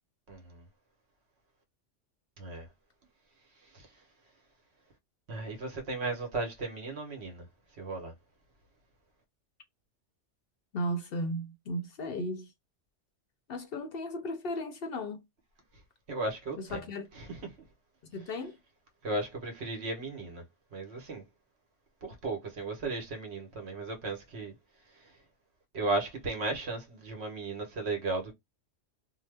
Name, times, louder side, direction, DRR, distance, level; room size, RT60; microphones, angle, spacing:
voice 1, 0.3-0.6 2.4-2.7 3.7-3.9 5.3-7.4 7.8-8.1 16.1-16.9 17.1-17.5 19.0-20.4 20.7-21.2 22.0-24.5 25.7-28.3, right 2 dB, 65° right, 1.2 m, -35 dB
voice 2, 10.7-12.5 13.5-15.2 16.7-17.1 18.1-18.6, equal, 60° left, 0.7 m, -35 dB
2.8 x 2.0 x 3.2 m
omnidirectional pair, 1.2 m